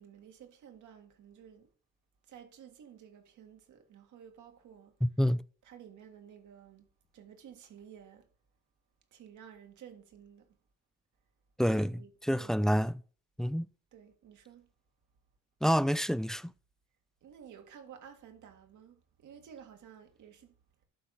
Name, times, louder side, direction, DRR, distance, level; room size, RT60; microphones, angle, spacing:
voice 1, 0.0-1.7 2.2-5.0 5.6-6.9 7.1-8.3 9.1-10.6 11.6-12.5 13.9-14.7 17.2-20.6, right 8 dB, 75° right, 2.1 m, -53 dB
voice 2, 5.0-5.4 11.6-11.9 12.3-13.0 13.4-13.7 15.6-16.5, equal, ahead, 0.4 m, -27 dB
11.5 x 4.1 x 6.6 m
cardioid pair, 90°, 30 cm